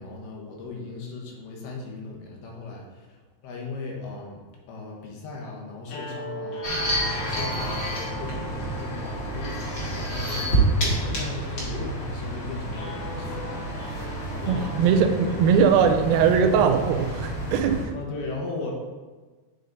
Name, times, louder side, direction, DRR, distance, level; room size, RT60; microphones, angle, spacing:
voice 1, 0.0-15.6 17.9-18.7, left 3 dB, 90° left, -1 dB, 3.0 m, -37 dB
sound 1, 5.8-16.1, left 1 dB, 70° left, 1.8 m, -41 dB
sound 2, 6.6-17.8, right 1 dB, 45° left, 1.5 m, -29 dB
voice 2, 14.5-17.9, right 6 dB, 85° right, 6 dB, 2.3 m, -20 dB
9.7 x 3.5 x 3.9 m, 1.3 s
omnidirectional pair, 4.4 m